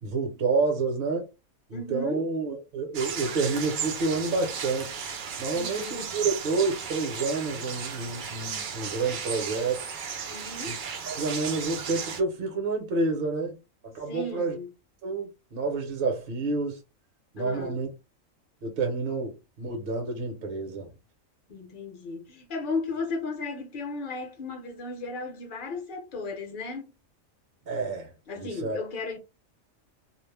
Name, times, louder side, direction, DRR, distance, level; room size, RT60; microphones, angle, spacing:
voice 1, 0.0-1.3 1.7-5.0 5.4-9.8 10.6-10.8 11.1-13.6 13.8-14.6 15.0-16.8 17.3-17.9 18.6-20.9 27.7-28.8, right 3 dB, 50° right, 0.9 m, -29 dB
voice 2, 1.7-2.2 5.5-6.3 10.3-10.8 14.1-14.7 17.4-17.8 21.5-26.9 28.3-29.2, left 3 dB, 45° left, 0.8 m, -35 dB
sound 1, 2.9-12.2, right 6 dB, 70° right, 0.4 m, -35 dB
2.4 x 2.0 x 3.3 m
omnidirectional pair, 1.4 m